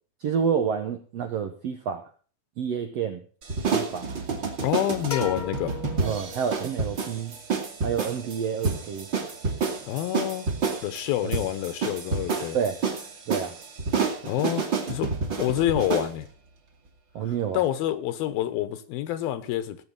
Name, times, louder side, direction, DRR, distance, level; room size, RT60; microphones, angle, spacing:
voice 1, 0.2-2.1 2.6-3.2 3.7-4.1 6.0-7.4 7.8-9.1 11.2-11.3 12.5-12.8 13.3-13.6 17.1-17.6, right 7 dB, 75° right, 6 dB, 1.5 m, -29 dB
sound 1, 3.4-16.1, right 5 dB, 35° right, 2.4 m, -29 dB
voice 2, 4.6-5.8 9.8-10.5 10.8-12.6 14.2-15.1 15.4-16.3 17.5-19.8, left 13 dB, 80° left, 12 dB, 2.9 m, -27 dB
sound 2, 5.1-6.9, left 6 dB, 30° left, 1.2 m, -36 dB
17.5 x 7.8 x 5.6 m, 0.40 s
omnidirectional pair, 4.3 m